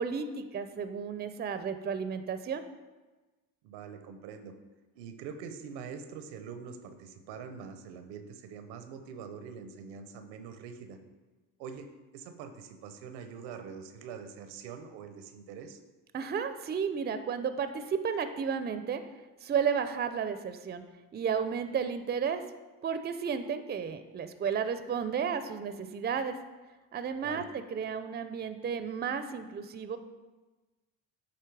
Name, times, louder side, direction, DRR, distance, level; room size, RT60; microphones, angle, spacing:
voice 1, 0.0-2.6 16.1-19.0 19.4-20.8 21.1-22.4 22.8-26.4 26.9-30.0, right 6 dB, 25° right, 10 dB, 0.5 m, -33 dB
voice 2, 3.6-4.5 4.9-11.0 11.6-15.8 27.2-27.4, right 6 dB, 85° right, 8 dB, 0.7 m, -44 dB
8.3 x 3.2 x 4.6 m, 1.2 s
supercardioid pair, 65°, 44 cm